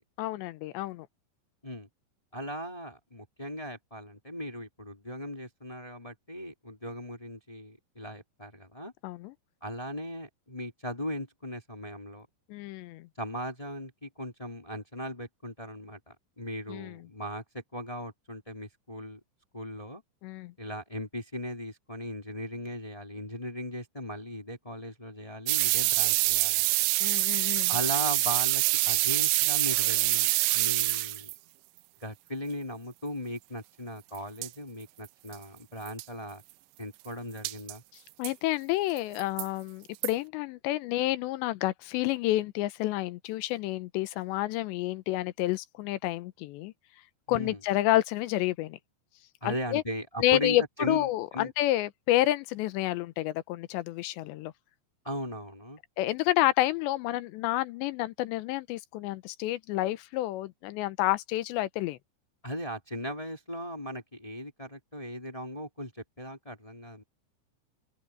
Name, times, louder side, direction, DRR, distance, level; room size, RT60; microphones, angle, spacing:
voice 1, 0.2-1.1 9.0-9.3 12.5-13.1 16.7-17.0 20.2-20.5 27.0-27.7 38.2-46.7 47.3-48.8 49.4-49.8 50.2-54.5 56.0-62.0, left 16 dB, 80° left, 3.0 m, -29 dB
voice 2, 2.3-8.9 9.6-12.3 13.2-19.2 19.5-20.0 20.6-26.7 27.7-31.3 32.0-36.4 36.8-37.8 47.3-47.6 49.4-51.5 55.0-55.8 62.4-67.0, equal, 10° left, 1.9 m, -38 dB
sound 1, 25.5-31.4 34.1-34.2 34.4-34.5 35.0-35.1 35.3-35.4 35.9-36.0 37.4-37.7 38.2-38.3 39.0-39.5 40.0-40.1, right 20 dB, 85° right, 2.9 m, -26 dB
open air
omnidirectional pair, 5.3 m